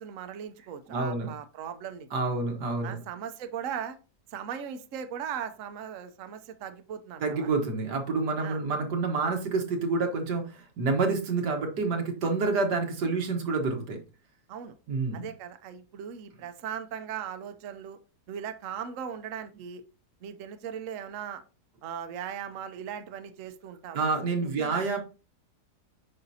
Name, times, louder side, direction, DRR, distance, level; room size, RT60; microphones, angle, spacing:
voice 1, 0.0-2.1 2.8-4.0 4.3-7.5 8.4-8.6 14.5-14.7 15.1-18.0 18.3-19.8 20.2-21.4 21.8-24.1 24.4-24.8, right 8 dB, 60° right, 8 dB, 1.0 m, -38 dB
voice 2, 0.9-1.3 2.1-3.0 7.2-14.0 14.9-15.2 23.9-25.0, right 3 dB, 90° right, 4 dB, 2.0 m, -28 dB
8.7 x 5.5 x 2.8 m, 0.33 s
omnidirectional pair, 1.7 m